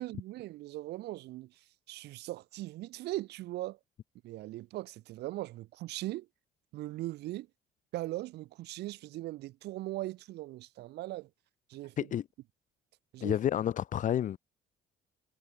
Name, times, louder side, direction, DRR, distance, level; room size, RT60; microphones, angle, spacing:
voice 1, 0.0-1.5 1.9-3.8 4.2-6.3 6.7-7.5 7.9-11.3 11.7-11.9 13.1-13.4, right 17 dB, 80° right, 2.5 m, -39 dB
voice 2, 12.0-12.3 13.2-14.4, left 10 dB, 50° left, 0.9 m, -30 dB
cardioid pair, 110°, 17 cm